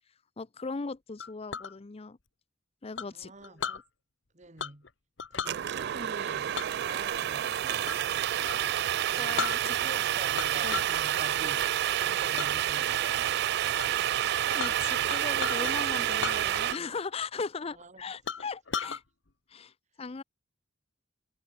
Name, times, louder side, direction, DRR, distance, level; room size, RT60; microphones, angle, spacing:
voice 1, 0.4-2.2 2.8-3.8 9.2-10.0 10.6-10.8 14.5-19.0 19.5-20.2, left 4 dB, 30° left, 0.5 m, -38 dB
Chink clink, 1.2-1.7 3.0-3.8 4.6-4.9 5.2-5.6 6.5-8.1 8.4-8.6 9.0-9.1 9.4-10.0 10.3-11.0 11.4-11.7 12.4-12.5 13.0-13.4 13.8-13.9 14.1-15.7 16.1-17.0 17.2-17.3 17.8-17.9 18.3-19.0, left 6 dB, 70° left, 1.3 m, -36 dB
voice 2, 3.0-3.6 4.3-4.9 5.3-7.9 9.1-13.3 17.8-18.0, right 3 dB, 40° right, 2.4 m, -46 dB
sound 1, 5.5-16.7, right 11 dB, 55° right, 0.4 m, -29 dB
head